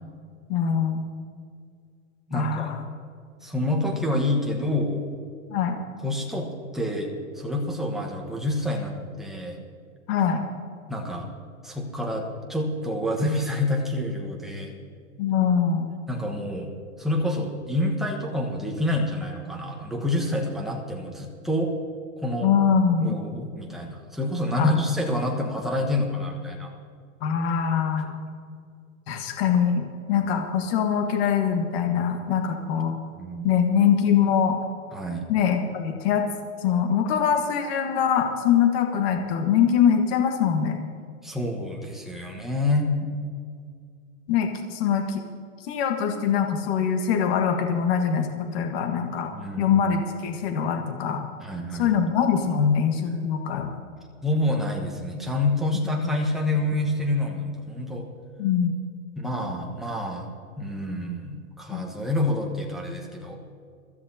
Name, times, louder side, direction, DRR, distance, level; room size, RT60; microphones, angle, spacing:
voice 1, 0.5-1.1 2.3-2.7 5.5-5.8 10.1-10.5 15.2-15.9 22.4-23.3 24.6-24.7 27.2-28.1 29.1-33.0 33.4-34.6 35.3-36.3 36.6-40.8 44.3-45.2 45.6-51.2 51.8-53.8 58.4-58.8 61.7-61.8, left 7 dB, 45° left, 4 dB, 1.5 m, -23 dB
voice 2, 2.3-2.7 3.4-5.0 6.0-9.6 10.9-11.3 11.6-14.7 16.1-16.7 17.0-21.7 22.2-22.5 23.0-26.7 33.2-33.4 34.9-35.3 41.2-42.9 49.3-49.8 51.4-52.1 54.2-58.1 59.2-60.3 60.6-63.4, left 1 dB, ahead, -1 dB, 1.2 m, -27 dB
22.0 x 13.5 x 2.8 m, 2.2 s
hypercardioid pair, 150°, 43 cm